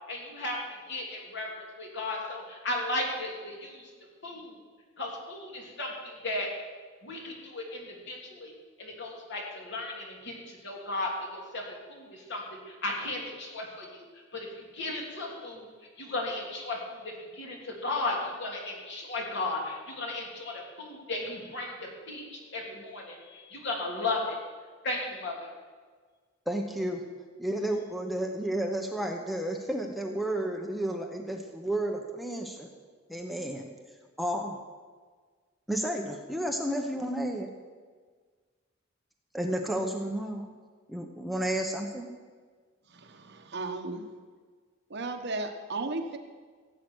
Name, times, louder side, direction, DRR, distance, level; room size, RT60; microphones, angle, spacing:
voice 1, 0.1-0.6 0.9-3.9 4.2-4.5 5.0-6.5 7.0-8.5 8.8-11.6 11.9-14.0 14.3-15.7 16.0-24.4 24.8-25.5, left 2 dB, 60° left, -1 dB, 3.1 m, -35 dB
voice 2, 26.5-27.0 27.4-32.7 33.1-33.7 34.2-34.5 35.7-37.5 39.3-40.5 40.9-42.0, right 1 dB, ahead, 2 dB, 0.9 m, -32 dB
voice 3, 42.9-44.1 44.9-46.2, right 2 dB, 60° right, 5 dB, 1.2 m, -35 dB
16.0 x 8.3 x 6.3 m, 1.5 s
head